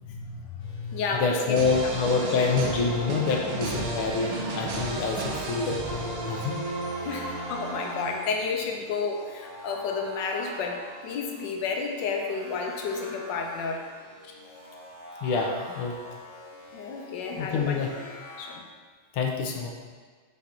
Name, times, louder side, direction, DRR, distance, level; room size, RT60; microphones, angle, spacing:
voice 1, 0.0-1.6 2.4-2.5 7.0-10.8 11.0-13.8 16.7-17.9 18.4-18.6, left 4 dB, 65° left, 2 dB, 1.4 m, -31 dB
sound 1, 0.6-18.6, left 1 dB, 40° left, 1.3 m, -46 dB
voice 2, 1.1-6.5 15.2-16.0 17.4-17.9 19.1-19.7, left 4 dB, 85° left, 1 dB, 1.7 m, -27 dB
sound 2, 1.6-8.5, right 3 dB, 80° right, 1.7 m, -33 dB
7.7 x 4.2 x 3.9 m, 1.5 s
omnidirectional pair, 2.3 m